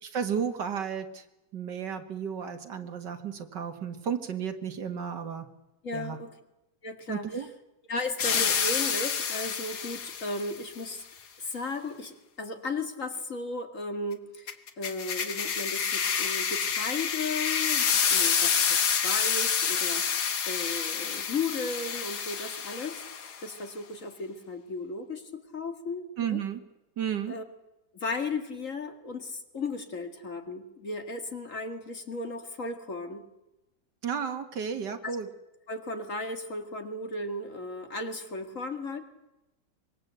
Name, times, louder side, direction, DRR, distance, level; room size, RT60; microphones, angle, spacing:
voice 1, 0.0-1.3 1.5-5.5 5.9-6.2 7.1-7.5 26.2-26.6 27.0-27.4 34.0-35.3, right 7 dB, 75° right, 7 dB, 2.3 m, -33 dB
voice 2, 5.8-6.3 6.8-7.3 7.9-11.0 11.4-26.4 27.3-27.4 27.9-33.3 35.0-35.2 35.7-39.0, left 3 dB, 45° left, 6 dB, 2.3 m, -35 dB
sound 1, 8.2-10.5 14.5-23.4, left 7 dB, 65° left, 1.9 m, -28 dB
25.0 x 22.0 x 8.1 m, 0.96 s
omnidirectional pair, 1.9 m